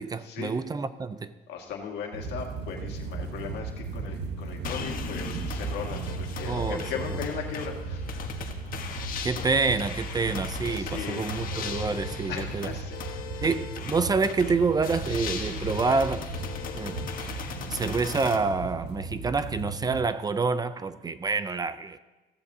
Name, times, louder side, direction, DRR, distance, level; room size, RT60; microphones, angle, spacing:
voice 1, 0.0-1.3 6.4-6.8 7.1-7.2 9.2-12.7 13.4-16.3 16.7-17.4 17.7-22.0, right 4 dB, 25° right, 0.5 m, -27 dB
voice 2, 1.5-8.0 10.7-11.2 12.3-13.0 13.3-13.4, left 7 dB, 80° left, 2.0 m, -37 dB
sound 1, 2.1-20.0, right 4 dB, 85° right, 1.1 m, -36 dB
sound 2, 4.6-18.4, left 7 dB, 55° left, 1.4 m, -38 dB
15.5 x 14.5 x 2.8 m
cardioid pair, 110°, 17 cm